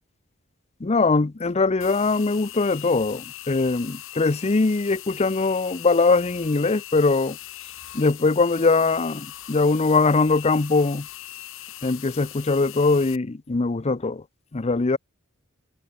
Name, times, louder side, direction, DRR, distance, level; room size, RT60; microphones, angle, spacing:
voice 1, 0.8-7.4 7.9-11.1 11.8-14.2 14.5-15.0, left 3 dB, 30° left, 0.6 m, -21 dB
sound 1, 1.8-13.2, left 14 dB, 65° left, 1.2 m, -40 dB
head